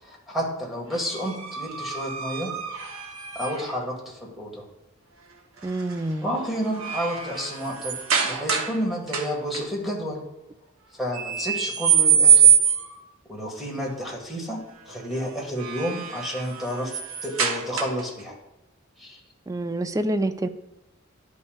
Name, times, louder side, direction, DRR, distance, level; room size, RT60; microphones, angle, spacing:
voice 1, 0.0-2.5 3.3-4.6 6.2-8.0 8.2-10.2 11.0-12.5 13.3-18.3 19.0-19.2, equal, ahead, -2 dB, 1.6 m, -30 dB
sound 1, 0.9-3.8 5.6-5.9 6.4-8.8 9.1-9.6 11.1-13.0 15.3-18.2, right 7 dB, 85° right, 0.9 m, -24 dB
voice 2, 5.6-6.4 19.5-20.5, right 1 dB, 15° right, 10 dB, 0.4 m, -27 dB
11.5 x 5.5 x 2.3 m, 0.97 s
head